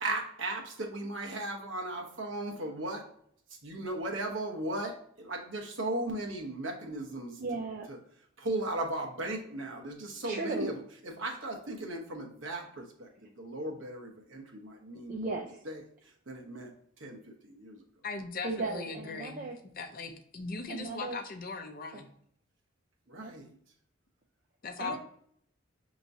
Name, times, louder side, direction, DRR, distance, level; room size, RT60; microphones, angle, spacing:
voice 1, 0.0-3.0 3.6-7.4 7.9-8.0 8.4-15.4 15.6-15.8 16.3-16.7 17.0-17.8 23.1-23.5 24.8-25.0, right 1 dB, 75° right, 1.1 m, -37 dB
voice 2, 7.4-7.9 10.2-10.7 15.1-15.6 18.4-19.6 20.7-21.2 21.9-22.0 23.2-23.3 24.8-25.0, right 3 dB, 40° right, 0.5 m, -36 dB
voice 3, 18.0-22.1 24.6-25.0, left 4 dB, 45° left, 0.6 m, -39 dB
5.8 x 3.0 x 2.6 m
head